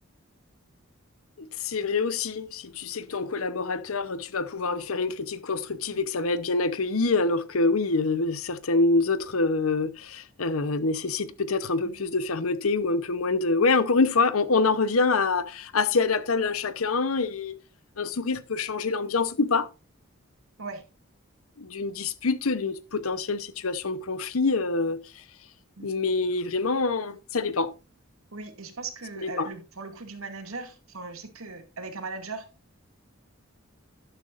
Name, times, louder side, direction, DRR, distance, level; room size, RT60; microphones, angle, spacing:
voice 1, 1.4-17.6 18.0-19.7 21.6-25.0 25.8-27.7 29.2-29.5, left 3 dB, 85° left, 0.9 m, -26 dB
voice 2, 28.3-32.4, right 4 dB, 85° right, 2.2 m, -38 dB
11.5 x 11.0 x 2.5 m
head